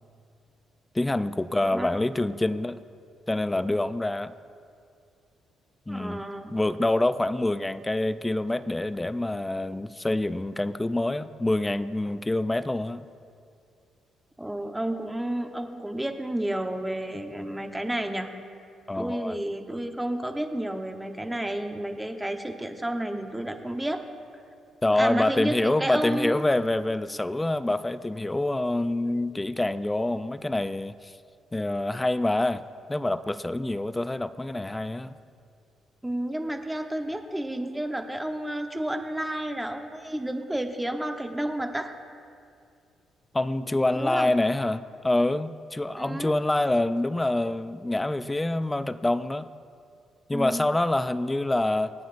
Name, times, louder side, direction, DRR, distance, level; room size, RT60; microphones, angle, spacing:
voice 1, 0.9-2.8 3.3-4.3 5.9-6.2 6.5-13.1 17.1-17.2 18.9-19.3 24.8-31.1 31.5-32.6 32.9-35.1 43.3-49.5 50.3-51.9, left 2 dB, 15° left, 13 dB, 0.4 m, -26 dB
voice 2, 1.6-2.0 5.9-6.6 14.4-18.3 18.9-24.1 24.9-26.5 36.0-41.9 44.0-44.4 46.0-46.4 50.3-50.7, right 1 dB, 10° right, 5 dB, 1.0 m, -31 dB
26.5 x 9.0 x 2.6 m, 2.4 s
cardioid pair, 90°, 0 cm